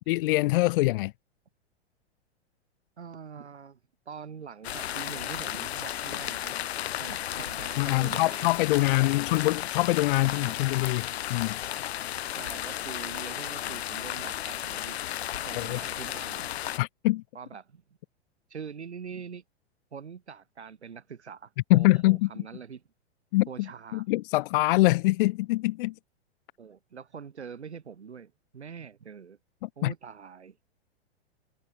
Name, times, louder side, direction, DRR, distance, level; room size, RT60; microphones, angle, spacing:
voice 1, 0.1-1.1 7.8-11.6 15.5-15.8 16.8-17.2 21.7-22.4 23.3-25.9 29.6-29.9, left 20 dB, 55° left, 1.5 m, -24 dB
voice 2, 3.0-3.8 4.1-6.6 7.0-8.5 8.8-9.2 10.1-10.6 12.3-15.0 15.3-16.6 17.3-17.8 18.5-19.4 19.9-22.8 23.5-24.0 26.6-29.4 29.8-30.6, right 6 dB, 85° right, 3.1 m, -44 dB
sound 1, 4.6-16.8, left 12 dB, 75° left, 0.8 m, -34 dB
hypercardioid pair, 110°, 33 cm